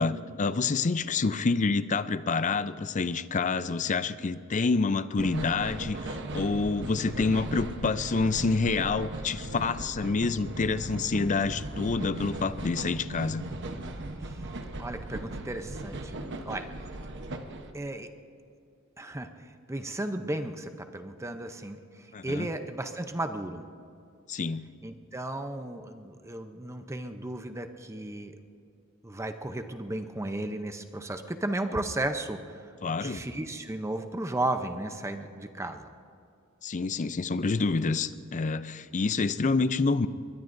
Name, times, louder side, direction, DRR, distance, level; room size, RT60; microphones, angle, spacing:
voice 1, 0.0-13.4 22.1-22.5 24.3-24.7 32.8-33.2 36.6-40.1, left 4 dB, 35° left, 14 dB, 0.5 m, -28 dB
sound 1, 5.2-17.7, right 2 dB, 60° right, 1.0 m, -38 dB
voice 2, 14.8-16.7 17.7-18.1 19.0-23.7 24.8-28.4 29.0-35.9 39.0-39.3, right 1 dB, 15° right, 7 dB, 0.7 m, -35 dB
24.0 x 21.5 x 2.6 m, 2.5 s
head